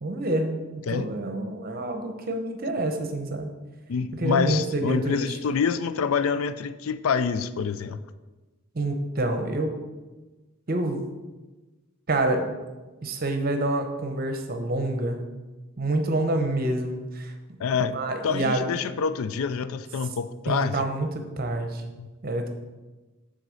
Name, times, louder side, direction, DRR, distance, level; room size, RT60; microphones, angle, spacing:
voice 1, 0.0-3.5 4.2-5.3 8.7-9.8 10.7-11.0 12.1-12.5 13.0-15.3 15.8-17.3 17.9-18.7 20.5-21.1 21.4-21.9 22.2-22.5, right 2 dB, 45° right, 5 dB, 0.8 m, -27 dB
voice 2, 3.9-8.0 17.6-20.9 22.0-22.1, left 6 dB, 75° left, 13 dB, 0.4 m, -27 dB
6.5 x 3.9 x 6.3 m, 1.2 s
head